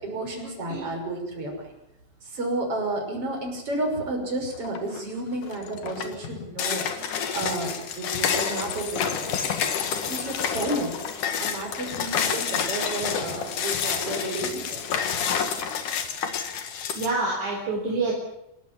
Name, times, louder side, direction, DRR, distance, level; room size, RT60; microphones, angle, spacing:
voice 1, 0.0-1.7 2.2-9.3 10.0-11.0 11.4-14.8, right 1 dB, 35° right, 1 dB, 7.1 m, -31 dB
sound 1, 4.6-5.0 5.4-17.1, left 7 dB, 60° left, 3.2 m, -29 dB
voice 2, 17.0-18.1, right 3 dB, 55° right, -1 dB, 5.2 m, -27 dB
27.0 x 14.5 x 9.8 m, 0.86 s
omnidirectional pair, 4.2 m